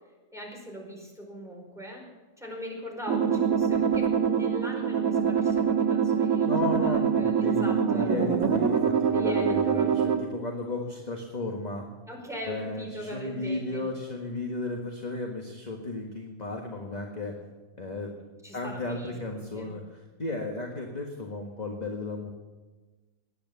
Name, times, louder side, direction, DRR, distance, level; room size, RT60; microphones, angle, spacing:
voice 1, 0.3-2.0 2.4-8.1 9.1-9.9 12.1-13.9 18.4-19.7, equal, ahead, -1 dB, 4.6 m, -40 dB
sound 1, 3.1-10.2, right 7 dB, 75° right, 1.9 m, -24 dB
voice 2, 6.4-11.9 12.5-17.3 17.8-18.1 18.5-22.3, left 2 dB, 30° left, 1 dB, 1.7 m, -34 dB
18.5 x 10.5 x 7.0 m, 1.3 s
omnidirectional pair, 1.5 m